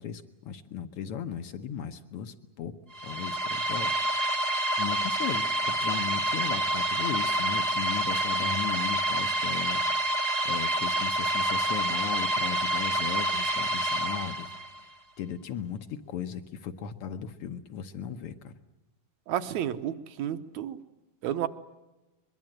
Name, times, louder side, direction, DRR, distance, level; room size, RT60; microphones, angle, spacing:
voice 1, 0.0-2.7 3.0-9.8 10.1-14.5 14.8-14.9 15.2-18.5, left 8 dB, 75° left, 8 dB, 1.3 m, -37 dB
sound 1, 2.9-14.8, right 1 dB, 40° right, 1.1 m, -28 dB
voice 2, 19.3-20.8 21.2-21.5, right 10 dB, 70° right, 11 dB, 2.0 m, -31 dB
23.5 x 22.5 x 7.8 m, 1.0 s
omnidirectional pair, 3.8 m